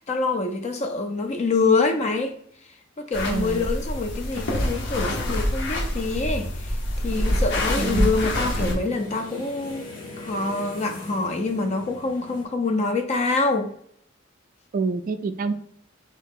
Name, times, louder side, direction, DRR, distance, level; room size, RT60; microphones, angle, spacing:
voice 1, 0.0-2.3 3.0-6.5 7.0-9.9 10.2-13.7, left 3 dB, 35° left, 0.4 m, -25 dB
sound 1, 3.1-8.7, left 1 dB, 60° left, 0.7 m, -26 dB
voice 2, 3.3-3.7 7.7-8.2 14.7-15.5, right 4 dB, 45° right, 0.3 m, -27 dB
sound 2, 5.2-12.4, left 2 dB, 80° left, 1.5 m, -43 dB
3.3 x 2.7 x 3.6 m
head